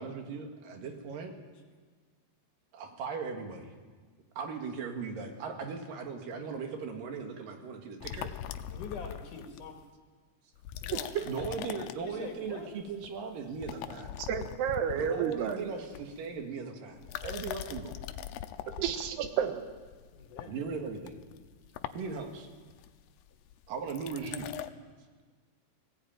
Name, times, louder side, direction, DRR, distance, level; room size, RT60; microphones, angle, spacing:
voice 1, 0.0-1.3 2.7-3.7 4.4-8.5 11.2-14.2 14.9-18.0 20.4-21.2 21.9-22.5 23.7-24.5, right 5 dB, 65° right, 4 dB, 3.4 m, -38 dB
sound 1, 8.0-9.8 10.6-12.5 12.8-13.2 13.5-16.5 17.0-24.7, left 11 dB, 85° left, 2.8 m, -42 dB
voice 2, 8.7-9.8 10.8-11.6 11.9-12.7 20.1-20.5 21.9-22.0, left 5 dB, 60° left, 3 dB, 3.1 m, -44 dB
voice 3, 10.9-11.2 14.2-15.7 18.8-19.7, right 8 dB, 85° right, 7 dB, 3.3 m, -31 dB
19.5 x 16.5 x 8.9 m, 1.5 s
omnidirectional pair, 4.6 m